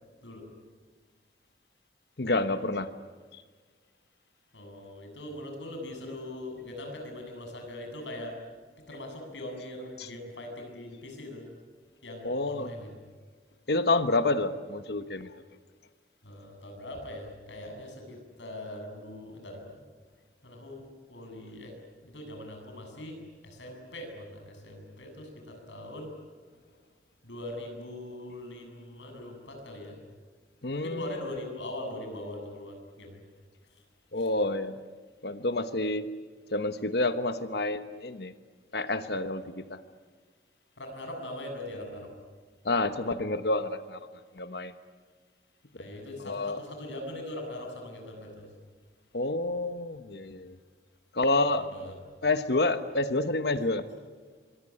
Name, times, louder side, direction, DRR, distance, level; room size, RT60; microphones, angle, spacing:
voice 1, 2.2-2.9 3.3-3.4 10.0-10.1 12.2-12.7 13.7-15.3 30.6-31.2 34.1-34.8 35.2-36.1 36.5-38.3 38.7-39.8 42.6-44.1 44.3-44.7 45.7-45.9 46.2-46.6 49.1-50.5 51.1-51.9 52.2-53.9, left 2 dB, 65° left, 11 dB, 1.2 m, -29 dB
voice 2, 4.5-8.4 8.9-11.4 12.0-12.9 16.2-19.8 20.4-21.7 22.0-26.1 27.2-30.0 30.7-33.2 33.7-33.8 34.2-34.3 40.8-42.1 45.8-48.5 51.6-51.9, left 1 dB, 90° left, 3 dB, 7.8 m, -41 dB
25.5 x 22.5 x 10.0 m, 1.5 s
head